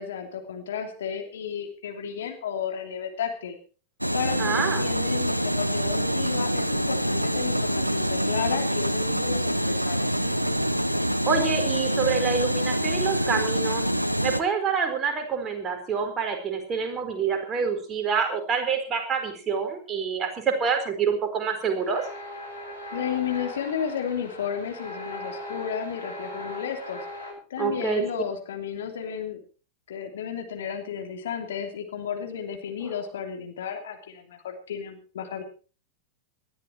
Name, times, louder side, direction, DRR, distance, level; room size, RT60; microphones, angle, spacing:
voice 1, 0.0-3.6 4.1-10.1 22.9-27.0 27.5-29.4 29.9-35.4, left 8 dB, 60° left, 4 dB, 3.0 m, -33 dB
sound 1, 4.0-14.4, equal, 90° right, 0.9 m, -26 dB
voice 2, 4.4-4.8 10.2-10.6 11.3-13.8 14.2-22.0 27.6-28.0 32.8-33.0, right 6 dB, 25° right, 5 dB, 4.3 m, -27 dB
sound 2, 21.7-27.3, left 1 dB, 85° left, 6.4 m, -39 dB
19.5 x 13.0 x 4.5 m, 0.38 s
figure-of-eight pair, 90°, 0 cm